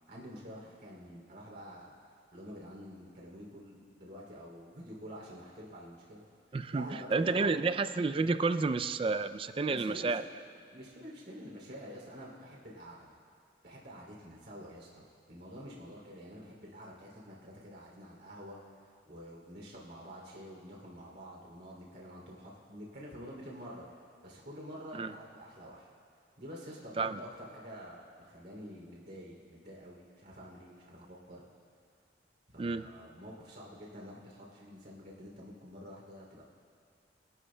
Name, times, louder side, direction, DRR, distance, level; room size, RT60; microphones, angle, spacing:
voice 1, 0.1-1.9 2.3-6.2 6.7-7.6 9.6-10.3 10.7-13.1 13.6-23.8 24.2-25.9 26.4-31.5 32.5-36.4, equal, 55° right, -3 dB, 2.8 m, -48 dB
voice 2, 6.5-10.2 24.9-25.1 27.0-27.2 32.6-32.9, right 4 dB, 30° right, 11 dB, 0.3 m, -30 dB
25.0 x 12.5 x 2.2 m, 2.4 s
head